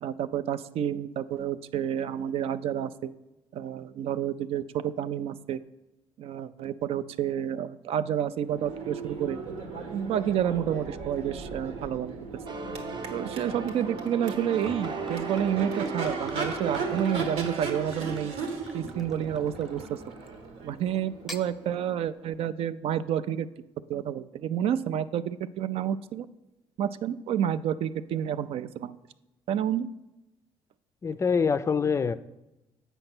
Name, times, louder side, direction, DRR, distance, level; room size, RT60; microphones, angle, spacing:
voice 1, 0.0-3.1 3.5-5.6 6.2-9.4 9.9-12.1 13.1-18.3 18.7-20.0 20.6-23.5 23.9-26.3 26.8-29.0 29.5-29.9, right 9 dB, 70° right, 14 dB, 0.4 m, -29 dB
Crowd / Race car auto racing / Accelerating revving vroom, 8.4-22.3, right 4 dB, 90° right, 1.4 m, -37 dB
sound 1, 12.5-19.9, right 5 dB, 50° right, 0.8 m, -38 dB
Gurgling / Chink clink / Liquid, 14.3-20.4 21.1-21.5, equal, ahead, 0.7 m, -47 dB
voice 2, 31.0-32.2, left 5 dB, 30° left, 14 dB, 0.4 m, -25 dB
8.0 x 5.4 x 5.9 m, 0.96 s
cardioid pair, 105°, 10 cm